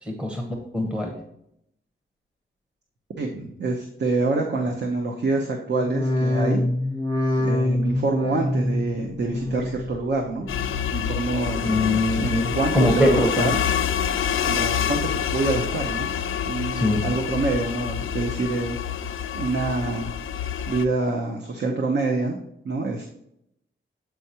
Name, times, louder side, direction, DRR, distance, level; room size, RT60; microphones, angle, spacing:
voice 1, 0.0-0.4 0.7-1.1 11.6-13.5 16.7-17.0, left 1 dB, 5° right, 2 dB, 0.8 m, -22 dB
voice 2, 3.2-6.6 7.4-10.5 10.9-11.6 12.2-13.5 14.4-16.1 16.4-18.8 19.3-20.1 20.7-22.4 22.6-23.2, right 3 dB, 55° right, 2 dB, 0.8 m, -26 dB
sound 1, 5.7-11.1 11.4-12.0 12.5-13.2 13.6-14.2 14.7-15.3 15.8-16.4 16.9-17.0, left 1 dB, 75° right, 1.7 m, -27 dB
sound 2, 10.5-20.9, left 8 dB, 80° left, 0.4 m, -27 dB
7.9 x 4.5 x 2.9 m, 0.76 s
wide cardioid pair, 160°, 21 cm